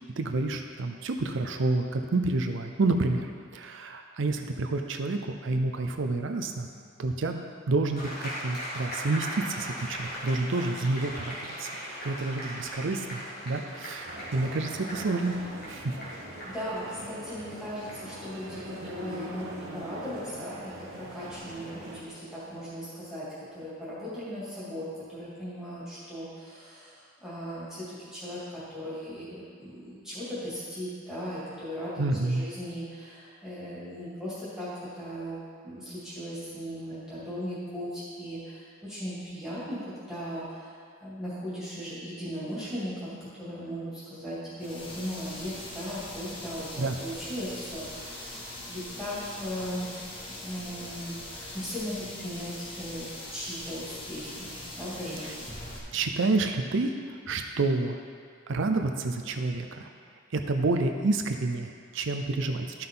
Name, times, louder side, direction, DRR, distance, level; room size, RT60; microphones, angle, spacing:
voice 1, 0.2-3.3 3.5-6.7 7.0-7.4 7.7-11.7 12.0-15.3 15.7-16.0 32.0-32.4 46.8-47.0 55.9-58.0 58.5-59.9 60.3-62.9, right 3 dB, 65° right, 5 dB, 0.5 m, -29 dB
sound 1, 7.9-22.9, equal, 50° left, 2.0 m, -41 dB
sound 2, 14.0-22.0, right 1 dB, 80° right, 1.2 m, -43 dB
voice 2, 16.4-35.4 35.6-55.3, equal, 5° right, -12 dB, 2.5 m, -38 dB
sound 3, 44.6-55.8, left 1 dB, 25° left, 1.2 m, -42 dB
12.0 x 5.7 x 3.9 m, 2.1 s
head